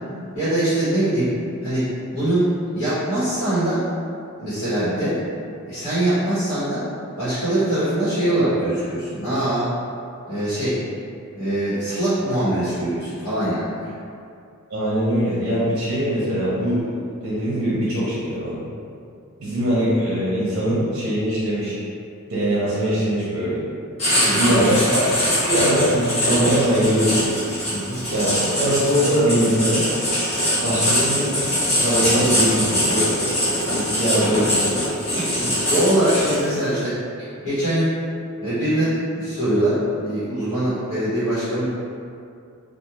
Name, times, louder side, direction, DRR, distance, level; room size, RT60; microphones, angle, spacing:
voice 1, 0.3-1.3 1.6-1.8 2.1-3.8 4.4-5.2 5.6-6.8 7.2-9.7 10.3-10.8 11.3-13.7 24.1-24.7 27.7-28.0 33.9-34.0 35.1-37.0 37.4-37.9 38.4-41.6, right 1 dB, 85° left, -14 dB, 1.2 m, -22 dB
voice 2, 14.7-16.8 17.2-18.7 19.4-21.7 22.3-23.6 24.3-25.0 25.4-27.4 28.1-29.9 30.6-31.3 31.8-33.3 33.7-34.8, equal, 50° right, -9 dB, 0.6 m, -22 dB
Writing, 24.0-36.6, equal, 30° left, 0.8 m, -22 dB
2.4 x 2.3 x 2.9 m, 2.4 s
head